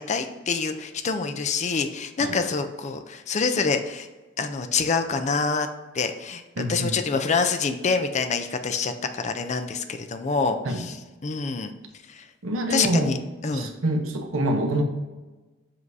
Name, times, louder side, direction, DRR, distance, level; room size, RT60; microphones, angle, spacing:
voice 1, 0.0-4.1 4.4-5.7 5.9-11.0 11.2-11.7 12.1-12.2 12.7-13.2 13.4-13.7, left 4 dB, 35° left, 8 dB, 0.4 m, -26 dB
voice 2, 6.6-7.0 10.6-10.8 12.4-13.1 13.5-14.8, right 1 dB, 85° right, 4 dB, 0.9 m, -26 dB
7.4 x 2.7 x 4.7 m, 1.2 s
head